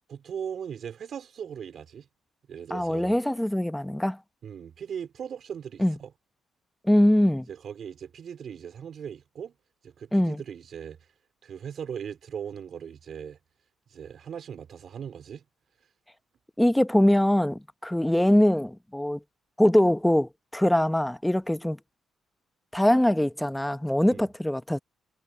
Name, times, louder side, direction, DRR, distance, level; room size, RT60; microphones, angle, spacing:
voice 1, 0.1-2.1 2.5-3.1 4.4-6.1 7.5-9.6 9.8-11.0 11.4-13.4 13.9-15.4 24.1-24.3, right 8 dB, 60° right, 4.0 m, -39 dB
voice 2, 2.7-4.2 5.8-6.0 6.8-7.5 10.1-10.4 16.6-19.2 19.6-21.8 22.7-24.8, left 1 dB, 5° left, 0.9 m, -22 dB
cardioid pair, 90°, 0 cm